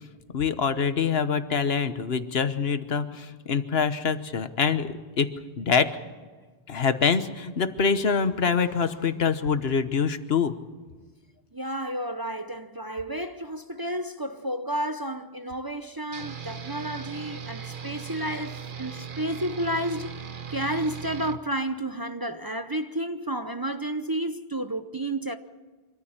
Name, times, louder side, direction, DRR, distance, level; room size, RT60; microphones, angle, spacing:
voice 1, 0.3-5.9 6.7-10.5, left 6 dB, 75° left, 1.3 m, -25 dB
voice 2, 11.5-20.2 20.5-25.4, right 1 dB, 25° right, 0.7 m, -31 dB
sound 1, 16.1-21.4, right 7 dB, 55° right, 1.1 m, -38 dB
25.0 x 14.0 x 8.8 m
omnidirectional pair, 1.1 m